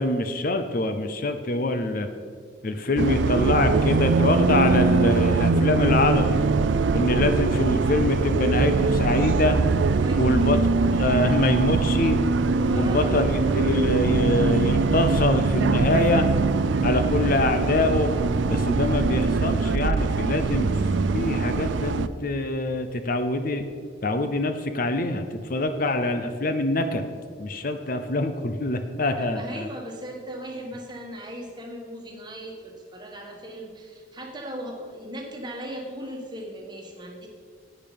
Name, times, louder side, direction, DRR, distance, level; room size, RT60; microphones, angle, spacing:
voice 1, 0.0-2.1 2.6-6.4 6.9-9.6 10.2-10.6 10.9-12.2 12.7-16.3 16.8-18.1 18.5-20.7 21.1-23.6 24.0-27.1 27.4-29.7, left 2 dB, 50° left, 8 dB, 0.7 m, -24 dB
Bus, 3.0-22.1, right 4 dB, 80° right, 0.5 m, -22 dB
voice 2, 8.5-9.2 10.0-10.6 12.7-13.7 16.8-17.2 29.2-37.3, equal, 25° right, 1 dB, 1.6 m, -38 dB
10.5 x 8.8 x 5.3 m, 2.1 s
head